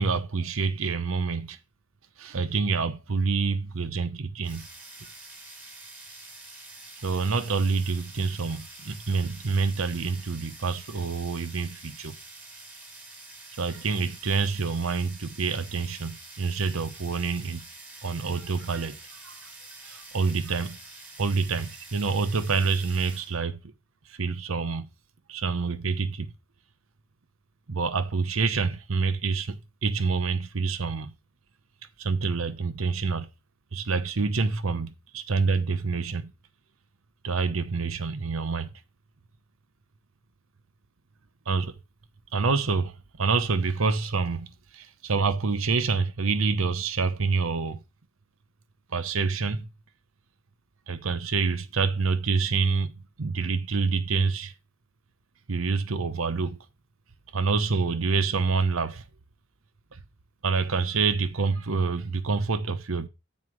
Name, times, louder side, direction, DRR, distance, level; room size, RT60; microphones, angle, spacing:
voice 1, 0.0-1.6 2.2-4.7 5.0-5.1 7.0-12.2 13.6-17.6 18.0-19.0 19.2-19.3 19.8-20.8 21.2-23.6 24.1-24.9 25.3-26.3 27.7-31.1 32.0-33.3 33.7-36.3 37.2-38.7 41.5-41.8 42.3-47.8 48.9-49.7 50.9-54.5 55.5-56.6 57.3-59.0 59.9-60.0 60.4-63.1, right 4 dB, 80° right, 0.9 m, -27 dB
sound 1, 4.4-23.4, right 2 dB, 10° right, 1.6 m, -46 dB
7.9 x 4.2 x 6.2 m
head